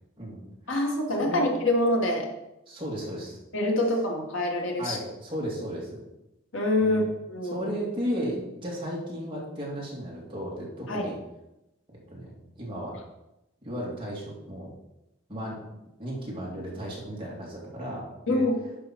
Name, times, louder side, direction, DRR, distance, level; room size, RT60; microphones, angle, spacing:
voice 1, 0.7-2.3 3.5-5.0 6.5-7.0 7.3-7.7 10.9-11.1 18.3-18.5, left 1 dB, 80° left, 1 dB, 1.8 m, -25 dB
voice 2, 2.7-3.4 4.8-6.1 6.8-7.1 7.4-11.2 12.1-12.9 13.6-14.7 15.3-15.6 16.0-18.4, equal, 25° right, -5 dB, 2.7 m, -34 dB
11.0 x 5.7 x 4.5 m, 0.92 s
head